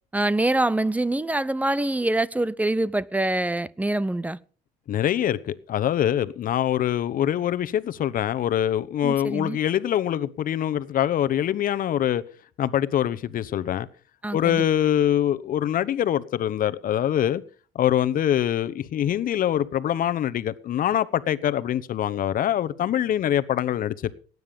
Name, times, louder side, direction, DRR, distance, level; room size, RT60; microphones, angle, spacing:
voice 1, 0.1-4.4 9.0-9.6 14.2-14.6, right 2 dB, 10° right, 0.6 m, -25 dB
voice 2, 4.9-12.2 12.6-13.9 14.3-17.4 17.7-24.1, left 11 dB, 55° left, 1.0 m, -24 dB
18.0 x 9.6 x 5.3 m
cardioid pair, 110°, 17 cm